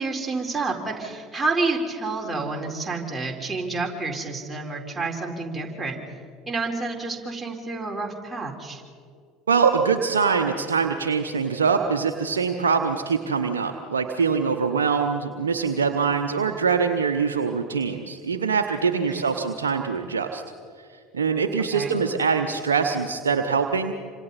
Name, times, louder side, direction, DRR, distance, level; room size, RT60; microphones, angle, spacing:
voice 1, 0.0-6.0 6.5-8.8 19.1-19.4 21.7-21.9, right 3 dB, 15° right, -1 dB, 4.3 m, -29 dB
voice 2, 9.5-20.4 21.1-23.9, right 5 dB, 85° right, 5 dB, 0.9 m, -23 dB
27.5 x 26.0 x 4.2 m, 2.3 s
hypercardioid pair, 70°, 0 cm